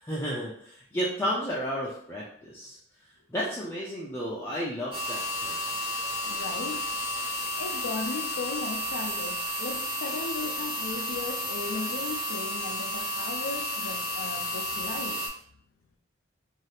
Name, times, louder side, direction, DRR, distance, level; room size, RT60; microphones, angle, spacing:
voice 1, 0.0-2.8 3.3-5.6, equal, 10° left, -6 dB, 0.3 m, -32 dB
sound 1, 4.9-15.3, left 1 dB, 25° right, 0.8 m, -32 dB
voice 2, 6.3-6.9 7.6-15.2, left 4 dB, 90° left, 5 dB, 0.5 m, -36 dB
2.7 x 2.4 x 3.2 m, 0.65 s
head